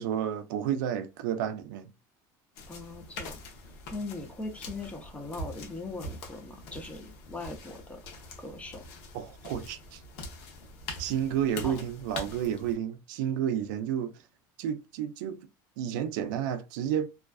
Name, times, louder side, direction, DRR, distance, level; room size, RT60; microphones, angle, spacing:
voice 1, 0.0-1.9 9.1-10.0 11.0-14.2 14.6-15.5 15.8-17.1, right 9 dB, 85° right, 0.4 m, -31 dB
sound 1, 2.5-12.7, left 2 dB, 70° left, 0.8 m, -43 dB
voice 2, 2.7-3.4 3.9-8.0 8.4-8.8 11.6-11.8, left 2 dB, 15° left, 0.6 m, -40 dB
2.4 x 2.3 x 2.2 m
supercardioid pair, 120°, 10 cm